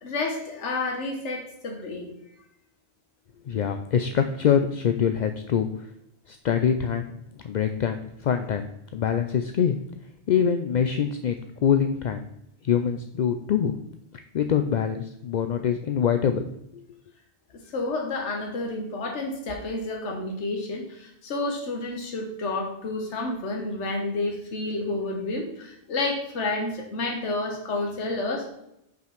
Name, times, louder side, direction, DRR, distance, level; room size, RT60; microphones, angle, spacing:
voice 1, 0.0-2.1 17.7-28.5, left 2 dB, 80° left, 2 dB, 1.5 m, -30 dB
voice 2, 3.5-5.7 6.3-7.1 7.4-8.6 8.9-9.8 10.3-11.4 11.6-12.2 12.6-13.7 14.3-16.4, left 8 dB, 60° left, 8 dB, 0.5 m, -24 dB
5.6 x 5.1 x 5.9 m, 0.79 s
omnidirectional pair, 1.2 m